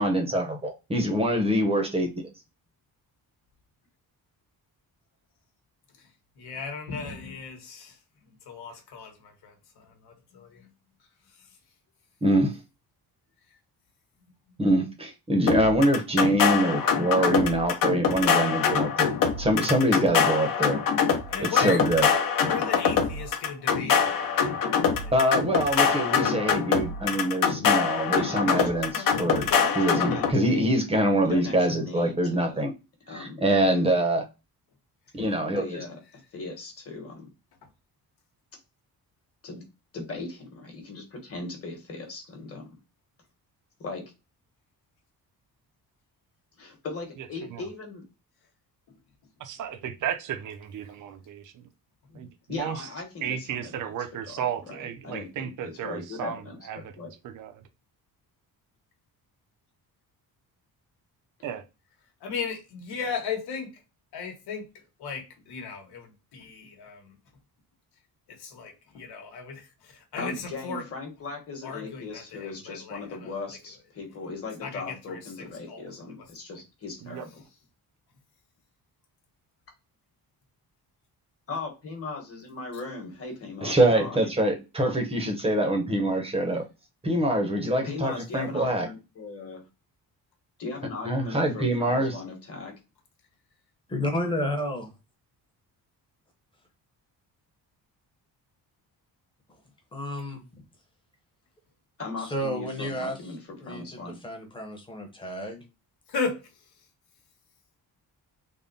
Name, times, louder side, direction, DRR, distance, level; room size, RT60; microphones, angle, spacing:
voice 1, 0.0-2.1 12.2-12.6 14.6-19.1 19.4-20.8 21.4-22.1 25.1-28.9 29.2-29.5 29.8-32.7 33.1-34.3 35.1-35.6 83.6-86.6 87.0-88.9 91.0-92.2, right 1 dB, 15° right, 0.7 m, -24 dB
voice 2, 6.4-7.9 8.5-9.1 9.4-9.5 10.0-10.6 21.3-21.8 22.4-24.6 25.0-25.1 62.2-63.7 64.1-64.6 65.0-66.1 66.3-67.0 68.4-69.6 70.1-70.8 71.6-73.0 74.6-74.8 75.1-75.2 75.7-75.8 106.1-106.4, left 5 dB, 90° left, 1.1 m, -35 dB
voice 3, 8.7-9.1 28.2-30.8 31.2-32.5 33.1-33.4 35.6-36.0 36.3-37.3 39.4-39.6 39.9-42.7 43.8-44.0 46.6-48.0 52.1-53.7 54.3-57.1 70.2-77.4 81.5-84.3 87.8-89.6 90.6-92.7 102.0-104.2, left 3 dB, 35° left, 1.2 m, -38 dB
sound 1, 15.5-30.3, left 6 dB, 60° left, 0.7 m, -24 dB
voice 4, 49.4-51.5 52.1-52.8 53.2-56.9 57.2-57.5 61.4-61.6 77.0-77.2, right 9 dB, 55° right, 0.5 m, -34 dB
voice 5, 93.9-94.9 99.9-100.4 102.2-103.3 103.6-105.6, equal, 15° left, 0.8 m, -31 dB
3.6 x 2.1 x 3.8 m
wide cardioid pair, 175°, 38 cm